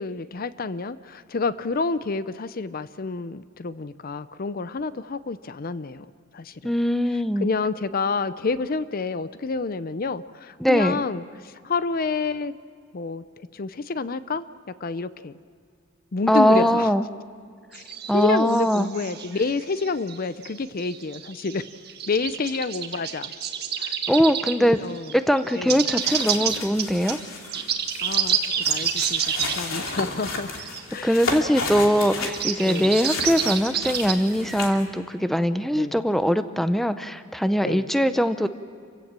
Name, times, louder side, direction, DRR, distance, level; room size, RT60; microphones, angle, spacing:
voice 1, 0.0-6.1 6.3-6.7 7.4-12.5 12.9-14.5 14.8-15.3 16.1-16.9 17.7-17.8 18.1-21.6 22.1-23.3 23.8-24.0 24.6-25.1 25.5-25.8 28.0-30.5 30.9-31.2 32.6-33.0 35.7-36.0 37.6-37.9, left 4 dB, 45° left, 14 dB, 0.5 m, -29 dB
voice 2, 6.6-7.5 10.6-11.0 16.3-17.0 18.1-18.9 24.1-24.8 25.1-27.2 31.0-38.5, equal, ahead, 10 dB, 0.6 m, -21 dB
sound 1, 17.7-20.2 20.4-24.6 24.9-30.8 31.1-31.2 31.4-34.8, right 8 dB, 50° right, 1.6 m, -29 dB
sound 2, 25.7-34.8, left 3 dB, 90° left, 2.9 m, -34 dB
27.5 x 16.0 x 7.5 m, 2.2 s
head